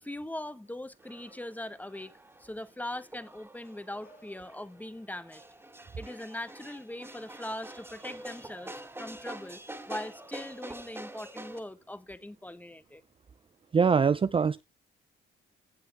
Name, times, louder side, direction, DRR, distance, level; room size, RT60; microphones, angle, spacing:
voice 1, 0.0-5.4 6.0-9.6 9.9-13.0, left 1 dB, 10° left, 1.3 m, -41 dB
sound 1, 1.0-11.6, right 1 dB, 10° right, 2.5 m, -46 dB
sound 2, 1.2-2.0 3.5-5.4 6.8-6.9, equal, 70° left, 6.2 m, -63 dB
voice 2, 13.7-14.6, right 6 dB, 25° right, 0.5 m, -23 dB
16.0 x 7.9 x 3.5 m
cardioid pair, 90°, 20 cm